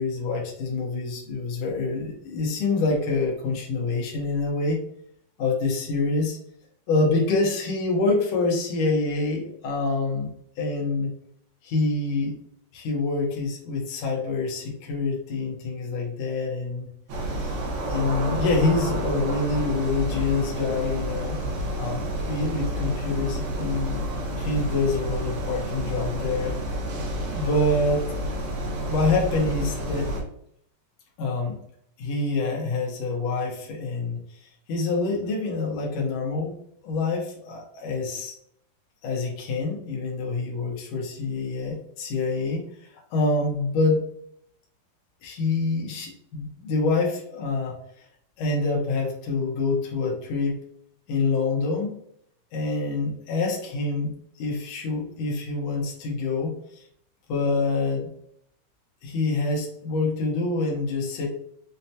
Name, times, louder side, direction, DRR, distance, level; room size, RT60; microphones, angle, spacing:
voice 1, 0.0-4.8 5.4-6.4 6.9-10.3 10.6-11.1 11.6-12.3 12.7-16.9 17.4-17.5 17.9-21.4 21.8-24.1 24.4-26.5 27.3-28.0 28.9-30.1 31.2-31.6 32.0-36.5 36.8-38.3 39.0-42.6 42.9-44.0 45.2-47.8 48.4-50.6 51.1-52.0 52.5-54.1 54.4-56.8 57.3-58.1 59.0-61.3, left 3 dB, 85° left, -2 dB, 1.4 m, -26 dB
sound 1, 17.1-30.2, right 1 dB, 80° right, 2.7 m, -29 dB
6.2 x 2.2 x 2.7 m, 0.69 s
omnidirectional pair, 4.1 m